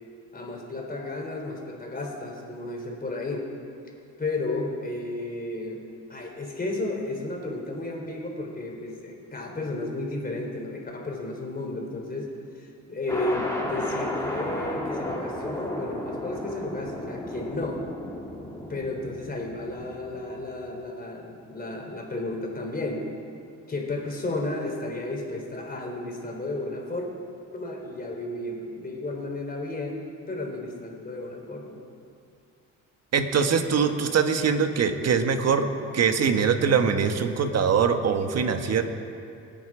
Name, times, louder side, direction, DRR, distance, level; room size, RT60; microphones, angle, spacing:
voice 1, 0.3-3.5 4.2-5.8 6.1-12.3 12.6-17.8 18.7-23.1 23.7-27.1 27.5-30.0 30.3-31.8, left 2 dB, 30° left, 0 dB, 4.0 m, -33 dB
sound 1, 13.1-20.6, left 1 dB, 10° left, 3.0 m, -34 dB
voice 2, 33.1-38.8, right 6 dB, 60° right, 7 dB, 1.5 m, -23 dB
26.0 x 9.5 x 5.0 m, 2.4 s
cardioid pair, 90°, 30 cm